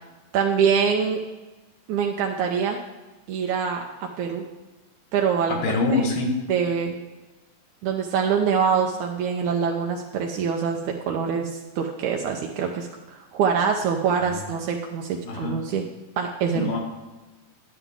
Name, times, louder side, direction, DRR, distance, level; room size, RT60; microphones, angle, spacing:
voice 1, 0.3-1.2 1.9-2.8 3.3-4.4 5.1-5.6 5.9-6.0 6.5-7.0 7.8-15.8 16.2-16.7, right 6 dB, 85° right, 2 dB, 1.7 m, -24 dB
voice 2, 5.5-6.4 14.3-14.4 15.3-15.6 16.5-16.8, left 3 dB, 70° left, 1 dB, 3.0 m, -24 dB
11.0 x 11.0 x 3.5 m, 1.2 s
omnidirectional pair, 4.3 m